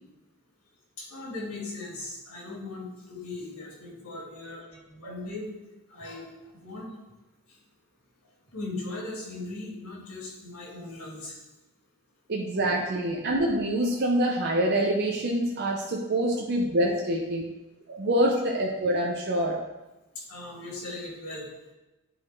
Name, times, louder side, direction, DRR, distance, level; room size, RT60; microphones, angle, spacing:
voice 1, 1.0-5.5 5.9-6.3 6.6-6.9 8.5-11.4 20.3-21.5, left 2 dB, 75° left, -3 dB, 2.9 m, -38 dB
voice 2, 12.3-17.4 17.9-19.6, right 1 dB, 50° right, -1 dB, 0.7 m, -26 dB
9.9 x 4.2 x 4.5 m, 1.0 s
head